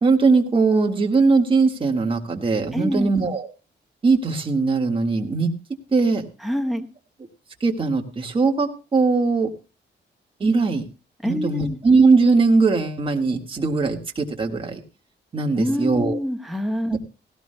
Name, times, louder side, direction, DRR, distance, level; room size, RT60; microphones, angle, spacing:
voice 1, 0.0-3.4 4.0-5.5 5.9-6.3 7.6-9.5 10.4-10.8 11.2-14.8 15.3-16.2 16.9-17.0, right 4 dB, 25° right, 2 dB, 1.7 m, -20 dB
voice 2, 2.7-3.1 6.4-6.9 11.2-11.8 15.6-17.0, equal, ahead, 3 dB, 1.2 m, -26 dB
17.5 x 16.5 x 2.2 m, 0.33 s
wide cardioid pair, 155°, 19 cm